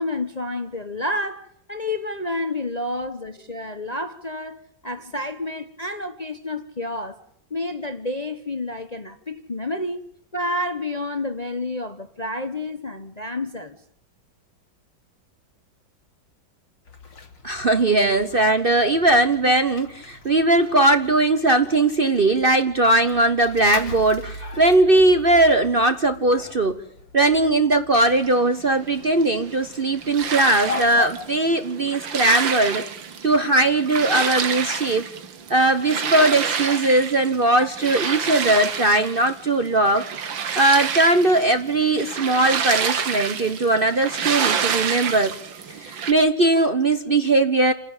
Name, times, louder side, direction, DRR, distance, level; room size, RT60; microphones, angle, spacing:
voice 1, 0.0-7.2 7.5-10.1 10.3-13.8, left 2 dB, 25° left, 1.0 m, -29 dB
sound 1, 16.8-31.3, left 3 dB, 75° left, 3.5 m, -39 dB
voice 2, 17.4-26.8 27.1-32.8 33.2-35.1 35.5-40.0 40.6-45.3 45.8-47.7, right 2 dB, 35° right, 1.0 m, -19 dB
sound 2, 27.9-46.1, right 7 dB, 90° right, 2.2 m, -28 dB
30.0 x 10.5 x 8.9 m
omnidirectional pair, 2.0 m